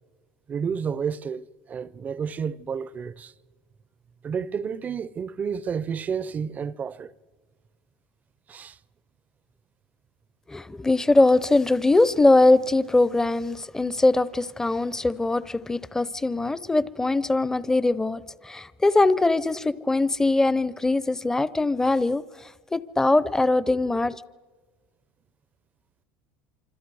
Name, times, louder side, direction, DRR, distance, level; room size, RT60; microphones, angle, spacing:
voice 1, 0.5-3.3 4.2-7.1 8.5-8.8, right 6 dB, 30° right, 0.6 m, -30 dB
voice 2, 10.5-22.2 22.7-24.2, left 2 dB, 10° left, 0.6 m, -21 dB
26.5 x 25.5 x 4.8 m
supercardioid pair, 115°, 6 cm